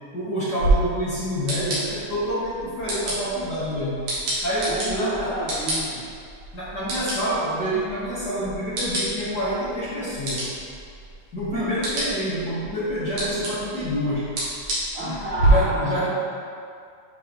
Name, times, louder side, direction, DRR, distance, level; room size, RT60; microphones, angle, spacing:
voice 1, 0.1-4.1 4.4-5.4 6.5-10.5 11.3-14.3 15.4-16.1, equal, 45° left, -10 dB, 1.4 m, -27 dB
sound 1, 0.6-15.5, right 1 dB, 70° right, 3.4 m, -30 dB
voice 2, 4.7-6.0 7.7-7.8 11.5-11.8 14.9-16.1, right 1 dB, 85° right, -6 dB, 1.1 m, -30 dB
11.0 x 4.7 x 3.0 m, 2.3 s
omnidirectional pair, 3.6 m